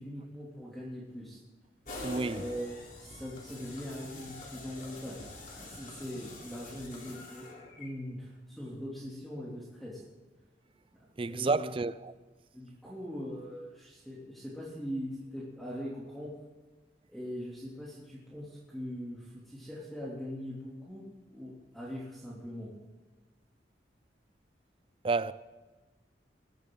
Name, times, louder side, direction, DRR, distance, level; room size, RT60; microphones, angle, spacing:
voice 1, 0.0-1.4 2.2-5.2 5.5-10.0 11.2-11.7 12.5-16.3 17.1-22.7, equal, ahead, 2.9 m, -41 dB
sound 1, 1.9-7.9, left 2 dB, 50° left, 3.2 m, -45 dB
voice 2, 2.0-2.4 11.2-12.1 25.0-25.3, right 3 dB, 30° right, 0.4 m, -30 dB
21.5 x 13.5 x 3.9 m
head